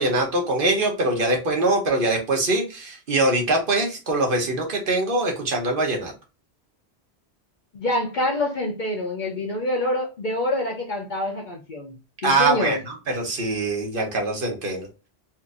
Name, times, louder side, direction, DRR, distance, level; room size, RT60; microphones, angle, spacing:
voice 1, 0.0-6.1 12.2-14.9, right 2 dB, 55° right, 1.2 m, -23 dB
voice 2, 7.7-11.9 12.2-12.8, left 1 dB, 50° left, 0.8 m, -26 dB
4.3 x 2.6 x 2.5 m
omnidirectional pair, 1.1 m